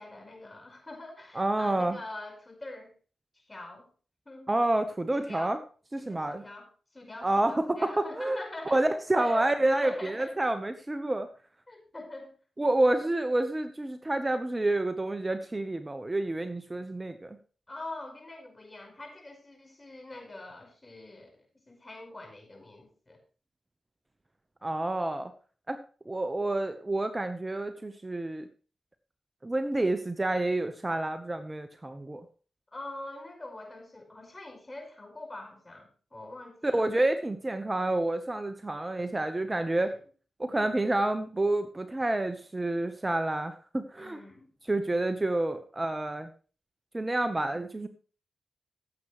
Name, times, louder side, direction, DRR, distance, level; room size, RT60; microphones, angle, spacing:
voice 1, 0.0-2.9 3.3-3.9 4.2-4.5 5.1-5.6 6.0-8.8 9.1-10.4 11.7-12.4 17.7-23.2 32.7-36.9 39.7-40.0 43.9-44.5, left 2 dB, 25° left, 3 dB, 5.1 m, -43 dB
voice 2, 1.3-2.0 4.5-5.6 5.9-6.4 7.2-7.9 8.1-8.4 8.7-11.3 12.6-17.4 24.6-25.3 25.7-25.8 26.1-28.5 29.4-32.2 36.6-39.9 40.4-44.2 44.7-46.3 46.9-47.9, right 2 dB, 25° right, 9 dB, 1.0 m, -29 dB
15.5 x 7.8 x 3.2 m, 0.39 s
supercardioid pair, 45°, 0 cm